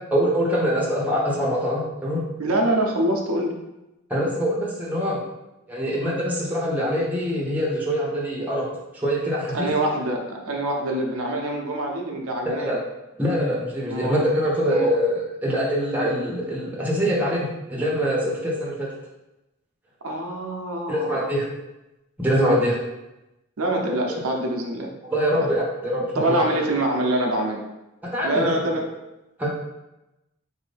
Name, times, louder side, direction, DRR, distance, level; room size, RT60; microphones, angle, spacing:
voice 1, 0.1-2.2 4.1-5.2 5.7-8.7 8.9-9.7 12.4-12.8 13.2-18.9 20.9-21.5 22.2-22.8 24.1-24.2 25.1-26.6 28.0-28.8 29.4-29.5, equal, 10° right, -4 dB, 0.8 m, -24 dB
voice 2, 2.4-3.5 9.5-12.8 13.9-14.2 14.7-14.9 20.0-21.2 23.6-24.9 25.4-25.5 26.1-27.6 28.2-28.8, right 1 dB, 85° right, 0 dB, 0.7 m, -25 dB
4.3 x 2.6 x 3.4 m, 0.96 s
head